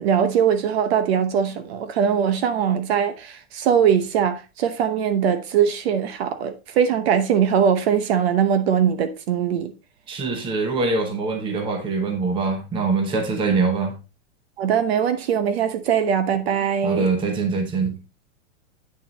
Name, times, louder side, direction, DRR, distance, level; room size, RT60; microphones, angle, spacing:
voice 1, 0.0-9.7 14.6-17.1, right 8 dB, 50° right, 0.9 m, -21 dB
voice 2, 10.1-13.9 16.8-18.0, right 4 dB, 10° right, 0.9 m, -23 dB
8.6 x 6.6 x 3.0 m
supercardioid pair, 170°, 40 cm